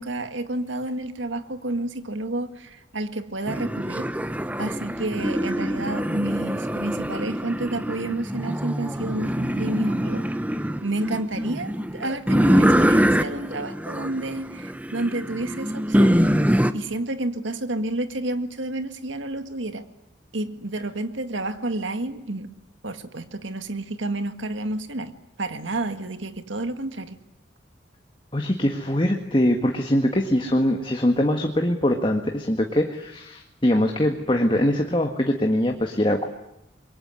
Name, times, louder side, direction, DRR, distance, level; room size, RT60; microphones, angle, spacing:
voice 1, 0.0-4.1 4.6-10.3 10.8-16.2 16.7-19.9 20.3-22.5 22.8-25.1 25.4-27.2, right 2 dB, 85° right, 9 dB, 1.9 m, -30 dB
sound 1, 3.5-16.7, equal, 10° right, 1.0 m, -24 dB
voice 2, 28.3-36.2, left 1 dB, 25° left, 3 dB, 1.7 m, -22 dB
26.5 x 22.5 x 9.7 m, 0.84 s
head